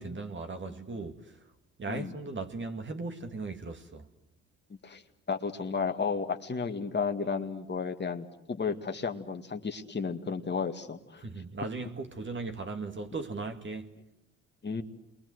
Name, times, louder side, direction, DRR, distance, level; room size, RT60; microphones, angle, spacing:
voice 1, 0.0-1.4 1.8-4.1 11.2-13.9, right 3 dB, 35° right, 2.4 m, -37 dB
voice 2, 5.3-11.2 14.6-14.8, left 5 dB, 35° left, 2.1 m, -33 dB
28.5 x 23.0 x 8.0 m
supercardioid pair, 60°, 32 cm